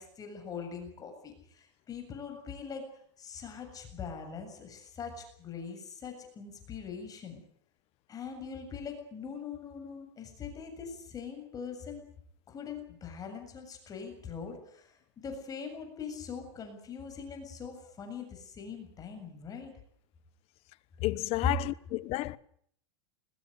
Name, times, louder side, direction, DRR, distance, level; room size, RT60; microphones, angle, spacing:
voice 1, 0.0-2.8 3.2-7.4 8.1-12.0 12.5-19.7 21.7-21.8, left 6 dB, 25° left, 7.4 m, -42 dB
voice 2, 21.0-22.4, left 18 dB, 45° left, 1.1 m, -31 dB
21.5 x 21.0 x 8.0 m
supercardioid pair, 130°, 14 cm